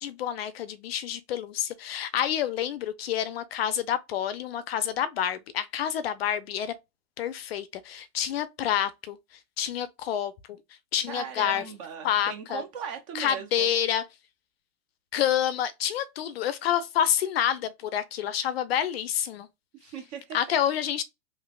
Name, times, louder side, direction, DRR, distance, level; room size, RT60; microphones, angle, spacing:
voice 1, 0.0-6.7 7.2-9.2 9.6-10.6 10.9-11.6 12.0-12.6 13.1-14.0 15.1-19.5 20.3-21.0, left 10 dB, 45° left, 0.5 m, -28 dB
voice 2, 11.1-13.7 19.7-20.6, right 7 dB, 25° right, 0.4 m, -38 dB
3.3 x 2.9 x 2.3 m
hypercardioid pair, 130°, 45 cm